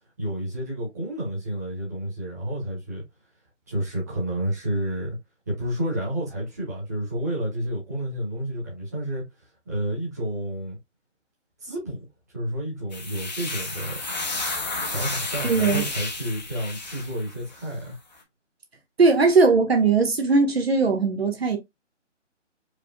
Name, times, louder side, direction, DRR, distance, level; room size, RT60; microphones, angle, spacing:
voice 1, 0.2-3.0 3.7-5.2 5.5-9.2 9.6-10.8 11.6-12.0 12.3-14.0 14.8-17.9, right 1 dB, 15° right, 1.4 m, -30 dB
sound 1, 12.9-17.6, left 3 dB, 35° left, 1.1 m, -32 dB
voice 2, 15.4-15.8 19.0-21.6, right 4 dB, 55° right, 1.5 m, -19 dB
4.9 x 3.2 x 2.4 m
hypercardioid pair, 175°, 37 cm